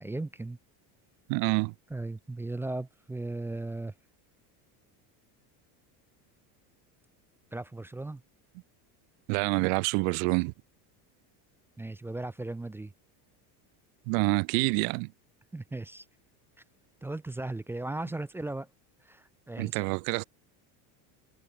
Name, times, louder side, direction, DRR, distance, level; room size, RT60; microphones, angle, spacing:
voice 1, 0.0-0.6 1.9-3.9 7.5-8.2 11.8-12.9 15.5-16.1 17.0-18.7 19.0-19.8, right 2 dB, 5° right, 0.6 m, -37 dB
voice 2, 1.3-1.7 9.3-10.5 14.1-15.1 19.6-20.2, right 40 dB or more, 65° right, 0.8 m, -27 dB
cardioid pair, 165°, 44 cm